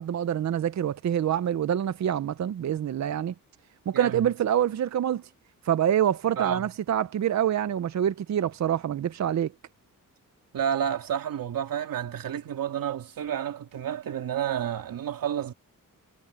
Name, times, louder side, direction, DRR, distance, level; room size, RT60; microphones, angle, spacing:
voice 1, 0.0-3.3 3.9-5.2 5.6-9.5, right 10 dB, 55° right, 0.6 m, -26 dB
voice 2, 3.9-4.3 6.4-6.7 10.5-15.5, right 9 dB, 90° right, 2.6 m, -30 dB
wide cardioid pair, 135°, 33 cm